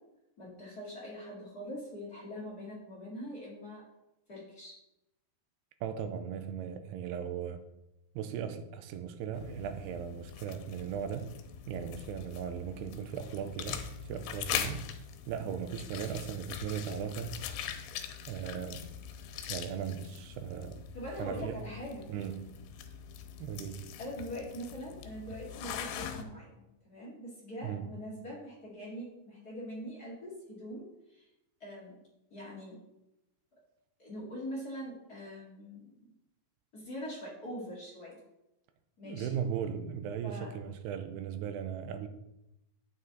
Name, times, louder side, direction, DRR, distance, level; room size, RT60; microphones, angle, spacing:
voice 1, 0.4-3.8 4.3-4.8 20.9-22.1 24.0-31.3 31.6-32.0 32.3-32.8 34.0-36.1 36.7-38.2 39.0-39.4 40.2-40.7, equal, 40° left, 1.3 m, -43 dB
voice 2, 5.8-7.6 8.2-11.4 11.7-14.9 15.3-17.4 18.3-18.9 19.5-20.8 21.2-21.6 22.1-22.6 23.4-23.9 27.6-27.9 39.0-42.1, right 8 dB, 85° right, 2.7 m, -37 dB
sound 1, 9.3-26.2, left 9 dB, 85° left, 2.9 m, -42 dB
9.2 x 8.7 x 4.0 m
omnidirectional pair, 4.8 m